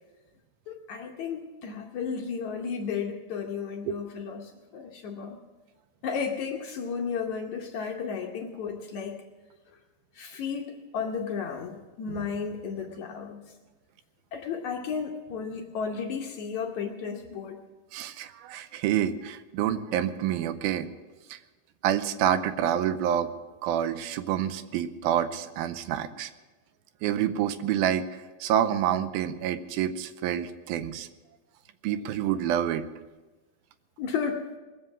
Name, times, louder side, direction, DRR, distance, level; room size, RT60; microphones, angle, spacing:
voice 1, 0.7-5.4 6.0-9.2 10.1-13.4 14.3-17.6 30.8-30.9 34.0-34.5, left 6 dB, 70° left, 2 dB, 1.9 m, -33 dB
voice 2, 17.9-20.9 21.3-21.4 21.8-23.3 23.6-26.3 27.0-28.1 28.4-31.1 31.8-32.9, right 10 dB, 90° right, 11 dB, 2.5 m, -27 dB
20.5 x 7.6 x 7.2 m, 1.2 s
omnidirectional pair, 4.2 m